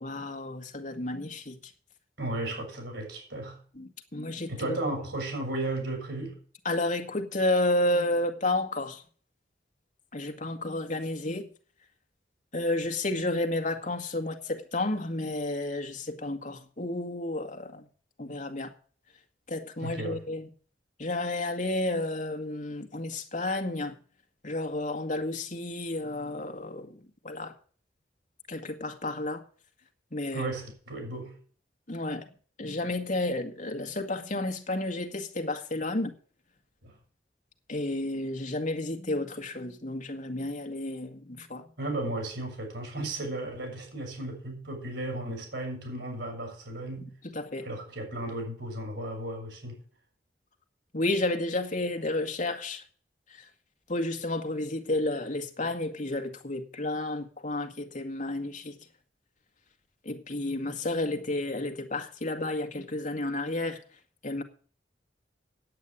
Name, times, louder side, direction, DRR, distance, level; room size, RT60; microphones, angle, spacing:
voice 1, 0.0-1.6 3.8-4.9 6.7-9.0 10.1-11.5 12.5-17.9 18.2-18.7 19.5-20.5 21.0-24.0 24.4-27.0 27.2-27.5 28.5-29.4 30.1-30.5 31.9-32.3 32.6-36.1 37.7-41.7 47.2-47.7 50.9-52.8 53.4-53.5 53.9-58.7 60.1-63.8 64.2-64.4, left 2 dB, 45° left, 1.7 m, -31 dB
voice 2, 2.2-3.6 4.5-6.4 19.8-20.2 30.3-31.4 36.8-37.0 41.8-47.1 47.6-49.8, right 2 dB, 85° right, 6.0 m, -35 dB
9.5 x 8.4 x 8.5 m
head